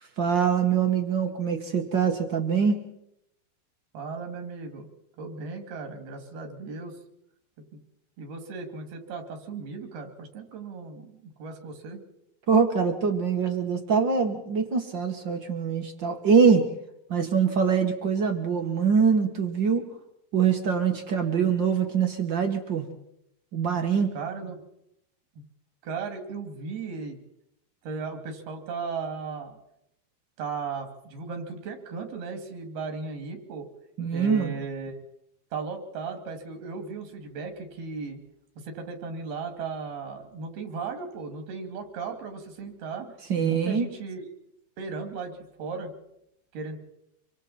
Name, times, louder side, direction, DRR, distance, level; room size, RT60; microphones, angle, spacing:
voice 1, 0.2-2.8 12.5-16.7 17.1-19.9 20.3-22.9 23.5-24.1 34.0-34.5 43.3-43.9, right 6 dB, 55° right, 5 dB, 1.2 m, -24 dB
voice 2, 3.9-4.9 5.2-6.9 7.7-7.8 8.2-12.0 24.1-24.6 25.4-25.5 25.8-27.2 27.8-29.6 30.4-33.7 34.1-35.0 35.5-38.2 38.6-43.1 43.4-44.3 44.8-45.9 46.5-46.8, right 4 dB, 85° right, 5 dB, 4.5 m, -36 dB
26.0 x 24.5 x 4.3 m, 0.79 s
omnidirectional pair, 4.4 m